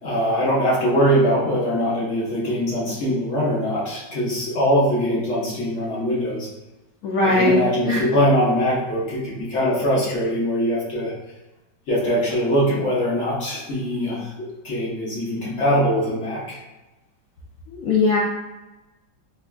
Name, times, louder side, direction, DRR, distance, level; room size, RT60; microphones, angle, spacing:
voice 1, 0.0-6.5 7.3-11.1 11.9-14.3 14.6-16.6, equal, 50° left, -6 dB, 0.9 m, -22 dB
voice 2, 7.0-8.0 17.7-18.2, left 2 dB, 90° left, -4 dB, 0.7 m, -20 dB
3.5 x 3.2 x 2.3 m, 1.1 s
omnidirectional pair, 2.0 m